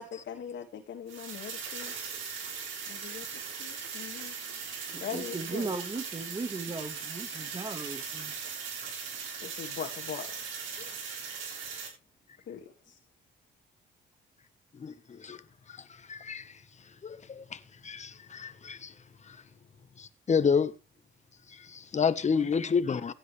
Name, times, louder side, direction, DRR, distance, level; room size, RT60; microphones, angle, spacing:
voice 1, 0.0-1.9 2.9-4.4 5.0-5.7 9.4-10.4 10.7-10.9 12.5-13.0, left 8 dB, 65° left, 2.0 m, -41 dB
sound 1, 1.1-11.9, right 6 dB, 85° right, 6.7 m, -39 dB
voice 2, 4.9-8.3 22.4-22.7, right 3 dB, 25° right, 1.7 m, -37 dB
voice 3, 14.7-15.4 15.7-18.9 19.2-19.4 20.0-20.7 21.5-23.1, left 6 dB, 35° left, 1.3 m, -30 dB
15.5 x 10.5 x 3.4 m
cardioid pair, 90°, 20 cm